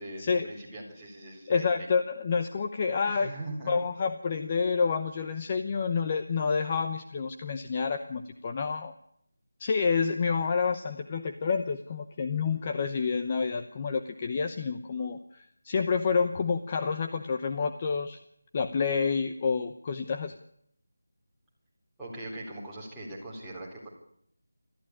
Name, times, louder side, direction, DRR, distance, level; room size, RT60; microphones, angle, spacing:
voice 1, 0.0-1.9 3.1-3.8 22.0-23.9, right 1 dB, ahead, -10 dB, 4.0 m, -41 dB
voice 2, 1.5-3.3 3.7-8.9 9.6-18.2 18.5-20.3, left 5 dB, 20° left, 7 dB, 0.8 m, -28 dB
19.0 x 14.0 x 9.9 m, 0.70 s
figure-of-eight pair, 175°, 0 cm